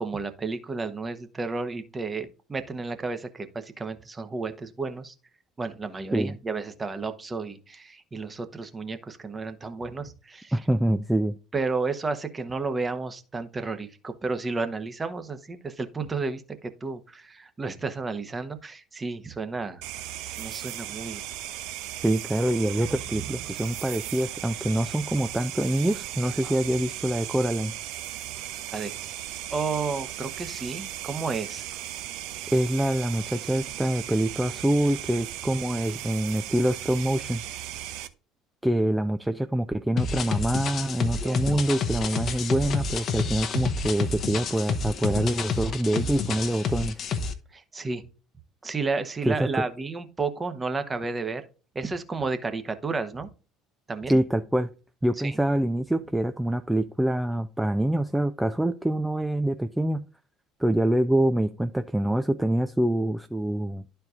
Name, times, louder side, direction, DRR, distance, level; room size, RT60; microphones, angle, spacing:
voice 1, 0.0-5.1 5.6-10.6 11.5-19.8 20.4-21.2 23.1-23.2 26.4-26.6 28.7-28.9 29.5-31.7 41.2-41.6 47.5-48.0 48.6-51.4 51.7-53.3 53.9-54.2 55.2-55.4, right 4 dB, 25° right, 1.0 m, -32 dB
voice 2, 10.5-11.4 22.0-27.7 32.5-37.4 38.6-47.0 49.3-49.6 54.1-54.7 55.0-60.0 60.6-63.8, right 1 dB, 5° right, 0.5 m, -25 dB
sound 1, 19.8-38.1, right 13 dB, 60° right, 0.6 m, -37 dB
sound 2, 40.0-47.3, left 5 dB, 45° left, 0.8 m, -29 dB
12.0 x 4.5 x 2.5 m
figure-of-eight pair, 60°, 0 cm